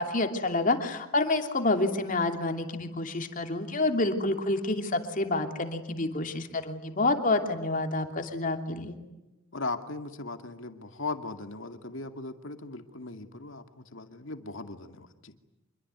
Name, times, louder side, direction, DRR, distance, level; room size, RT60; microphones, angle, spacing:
voice 1, 0.0-9.0, left 2 dB, 40° left, 5 dB, 2.9 m, -28 dB
voice 2, 9.5-15.3, left 3 dB, 65° left, 7 dB, 2.3 m, -38 dB
26.5 x 23.0 x 9.6 m, 0.99 s
head